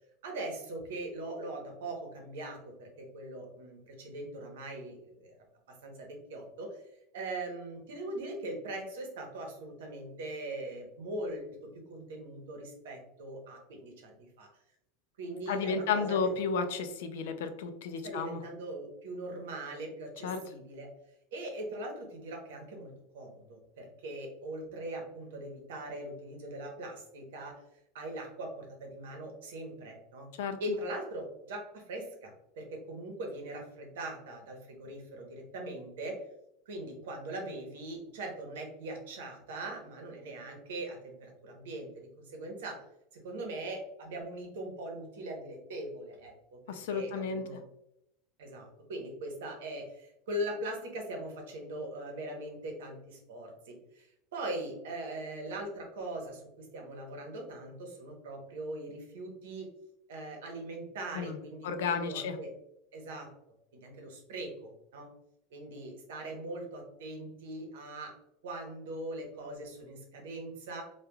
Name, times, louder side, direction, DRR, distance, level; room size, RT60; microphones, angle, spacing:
voice 1, 0.2-5.4 5.8-6.7 7.1-11.6 11.9-14.5 15.2-16.3 18.0-20.9 21.3-27.6 27.9-30.3 30.6-36.2 36.7-42.8 43.1-46.3 46.7-47.6 48.4-59.7 60.1-62.5 62.9-63.3 63.8-65.1 65.5-68.1 68.4-70.8, right 1 dB, 90° right, 1 dB, 0.9 m, -41 dB
voice 2, 15.5-18.4 20.2-20.4 30.4-30.6 46.7-47.4 61.2-61.4 61.6-62.4, left 5 dB, 80° left, 8 dB, 0.4 m, -32 dB
3.2 x 2.2 x 2.2 m, 0.81 s
supercardioid pair, 170°, 0 cm